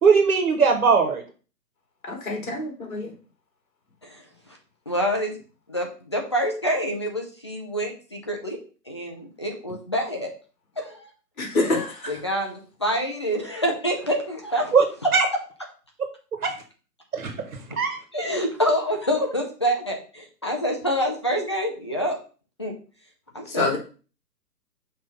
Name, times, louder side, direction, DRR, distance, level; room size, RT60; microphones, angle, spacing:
voice 1, 0.0-1.2 14.7-14.8 15.1-15.3 16.4-16.5 17.1-18.0, right 5 dB, 60° right, 4 dB, 1.5 m, -19 dB
voice 2, 2.0-3.1 11.4-12.1 23.5-23.8, left 2 dB, 55° left, 2 dB, 2.7 m, -26 dB
voice 3, 4.9-5.4 5.7-8.6 8.9-10.3 10.8-11.1 12.1-14.7 18.1-22.2 22.6-22.7 23.3-23.7, equal, 20° left, 1 dB, 0.5 m, -26 dB
5.9 x 3.0 x 5.6 m, 0.37 s
figure-of-eight pair, 135°, 49 cm